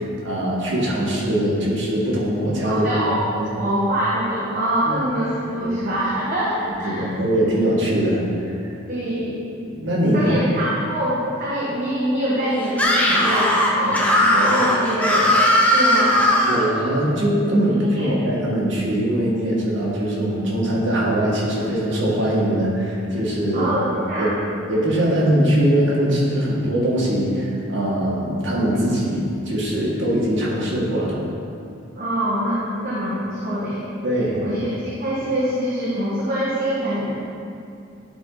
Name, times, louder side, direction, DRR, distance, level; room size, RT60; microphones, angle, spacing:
voice 1, 0.0-2.9 3.4-3.5 4.9-5.0 5.6-5.7 6.8-8.7 9.7-10.3 16.5-23.7 24.2-24.3 24.7-31.2 34.0-34.4, right 1 dB, 75° right, -6 dB, 1.8 m, -21 dB
voice 2, 2.6-3.2 3.5-7.1 8.9-9.4 10.1-16.3 18.0-18.1 23.5-24.4 31.9-33.8 34.4-37.2, right 1 dB, 50° right, -9 dB, 1.4 m, -24 dB
Screaming, 12.7-16.7, left 1 dB, 5° left, 0.8 m, -18 dB
11.0 x 4.3 x 4.0 m, 2.5 s
head